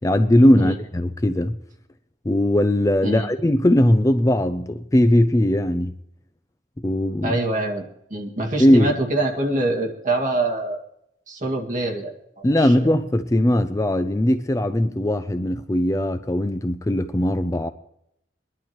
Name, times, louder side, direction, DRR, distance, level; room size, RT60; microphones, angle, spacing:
voice 1, 0.0-1.6 2.3-6.0 6.8-7.4 8.6-8.9 12.4-17.7, left 1 dB, 20° left, 0.4 m, -19 dB
voice 2, 7.2-7.8 8.1-10.8 11.3-12.7, right 2 dB, 45° right, 2.0 m, -25 dB
23.5 x 11.0 x 3.0 m
head